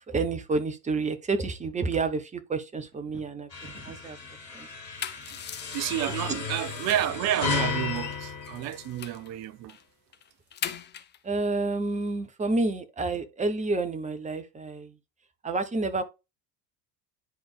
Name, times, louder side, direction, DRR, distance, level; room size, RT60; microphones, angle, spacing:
voice 1, 0.1-3.5 3.8-4.2 4.5-4.7 6.2-6.4 11.2-15.0 15.4-16.0, right 3 dB, 15° right, 0.9 m, -29 dB
sound 1, 2.9-4.3, right 2 dB, 75° right, 3.2 m, -49 dB
sound 2, 3.5-9.3, left 5 dB, 80° left, 1.8 m, -34 dB
sound 3, 4.7-7.2 7.6-9.3 9.7-9.8 10.1-11.2, left 9 dB, 20° left, 0.6 m, -40 dB
voice 2, 5.7-9.8, right 12 dB, 35° right, 0.5 m, -30 dB
10.5 x 3.5 x 3.5 m
figure-of-eight pair, 65°, 49 cm